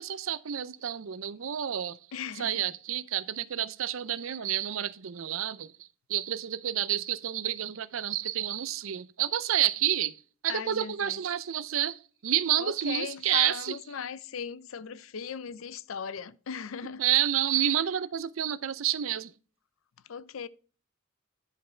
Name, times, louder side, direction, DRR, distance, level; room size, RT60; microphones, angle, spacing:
voice 1, 0.0-2.0 2.4-5.7 6.1-10.2 10.4-13.8 17.0-19.3, right 11 dB, 70° right, 0.5 m, -29 dB
voice 2, 2.1-2.7 10.5-11.2 12.6-17.0 17.6-17.8 20.1-20.5, left 6 dB, 70° left, 0.5 m, -38 dB
10.0 x 5.4 x 4.4 m
head